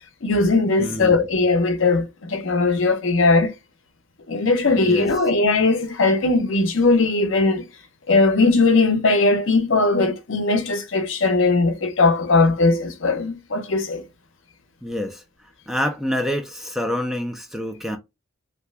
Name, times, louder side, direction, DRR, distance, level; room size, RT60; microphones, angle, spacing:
voice 1, 0.2-3.5 4.3-7.7 8.1-14.0, left 3 dB, 65° left, 0.7 m, -19 dB
voice 2, 0.8-1.1 4.8-5.1 14.8-15.2 15.7-18.0, equal, ahead, 0.4 m, -27 dB
2.8 x 2.2 x 3.2 m
head